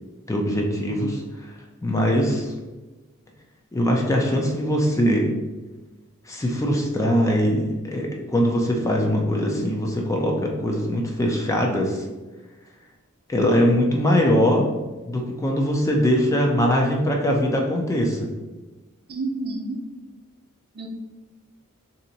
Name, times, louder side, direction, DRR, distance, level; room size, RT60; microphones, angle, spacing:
voice 1, 0.3-1.2 1.5-1.6 1.8-2.5 3.7-5.3 6.3-12.0 13.3-14.7 15.1-18.3, equal, 15° left, 0 dB, 0.4 m, -22 dB
voice 2, 19.1-19.8 20.7-20.9, right 2 dB, 50° right, 2 dB, 0.5 m, -29 dB
2.8 x 2.5 x 3.9 m, 1.2 s
head